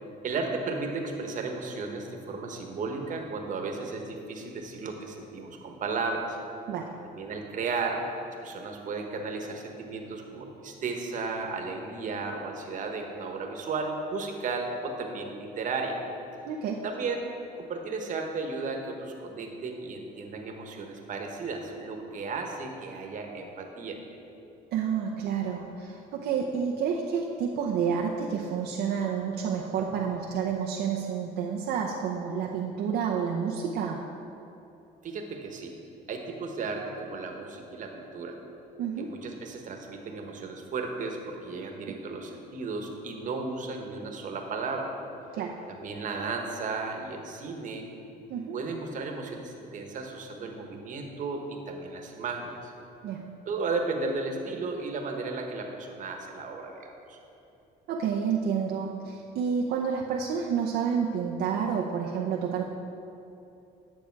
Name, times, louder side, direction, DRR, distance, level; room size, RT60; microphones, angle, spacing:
voice 1, 0.2-6.4 7.1-16.0 16.8-17.2 17.6-24.0 35.0-35.7 36.1-38.4 39.0-44.9 45.7-47.8 48.5-52.7 53.5-57.2, right 4 dB, 50° right, 2 dB, 1.2 m, -34 dB
voice 2, 16.5-16.8 24.7-34.0 38.8-39.1 41.9-42.0 45.3-45.6 48.3-48.6 53.0-53.3 57.9-62.6, right 7 dB, 70° right, -1 dB, 0.7 m, -29 dB
9.6 x 6.6 x 4.6 m, 2.9 s
cardioid pair, 110°, 17 cm